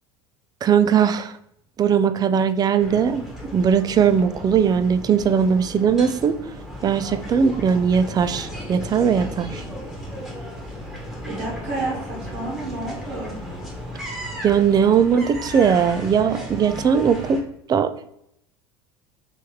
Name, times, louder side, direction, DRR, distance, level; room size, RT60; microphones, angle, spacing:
voice 1, 0.6-1.4 1.8-3.2 3.5-6.6 6.8-9.6 14.4-17.4 17.7-17.9, right 7 dB, 30° right, 12 dB, 0.3 m, -19 dB
sound 1, 2.8-17.4, equal, 5° right, 1.3 m, -35 dB
voice 2, 11.3-13.3, right 2 dB, 70° right, -5 dB, 1.4 m, -30 dB
3.4 x 3.1 x 3.1 m, 0.74 s
hypercardioid pair, 85°, 13 cm